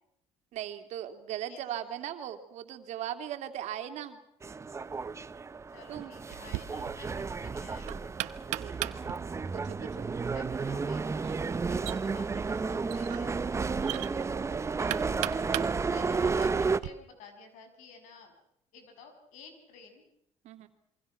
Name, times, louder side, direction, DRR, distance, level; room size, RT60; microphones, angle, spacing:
voice 1, 0.5-4.2 5.9-6.1 8.6-9.0 9.5-10.1 11.2-11.5 13.9-14.3 20.4-20.7, right 11 dB, 70° right, 8 dB, 3.0 m, -39 dB
voice 2, 1.5-1.8 5.7-8.1 10.3-11.1 11.7-13.7 14.8-15.0 15.9-18.3 18.7-20.0, left 5 dB, 85° left, 6 dB, 7.3 m, -52 dB
sound 1, 4.4-16.8, right 4 dB, 25° right, 1.0 m, -32 dB
Knock, 6.3-16.9, right 18 dB, 85° right, 1.0 m, -40 dB
27.5 x 24.0 x 6.1 m, 0.76 s
cardioid pair, 105°, 12 cm